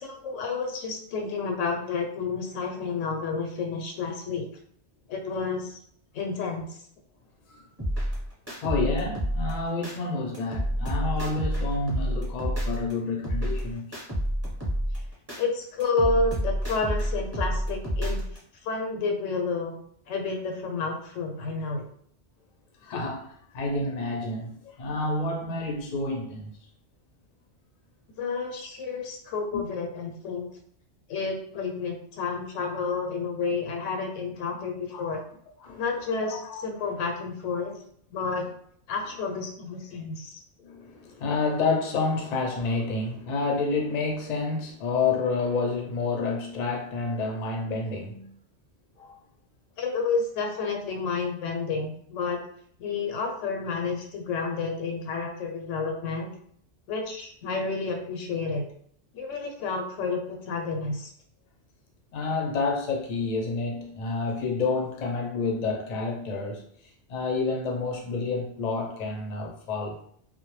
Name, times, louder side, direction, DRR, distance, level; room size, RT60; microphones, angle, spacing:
voice 1, 0.0-4.4 5.1-5.8 6.1-6.7 15.4-18.2 18.6-19.8 20.1-21.8 28.2-30.5 31.1-35.2 35.8-37.8 38.1-38.4 38.9-40.4 49.8-52.4 52.8-56.3 56.9-58.6 59.1-61.1, left 4 dB, 85° left, 3 dB, 0.9 m, -30 dB
sound 1, 7.8-9.9 10.3-12.9 13.2-15.4 15.8-18.4, equal, 15° right, 0.7 m, -29 dB
voice 2, 8.6-14.0 22.8-23.3 23.5-26.5 29.5-29.6 34.9-35.1 35.6-35.8 36.2-36.9 40.6-48.3 49.0-49.1 62.1-66.6 67.1-70.0, left 3 dB, 50° left, 0 dB, 0.5 m, -29 dB
2.2 x 2.0 x 3.0 m, 0.64 s
omnidirectional pair, 1.3 m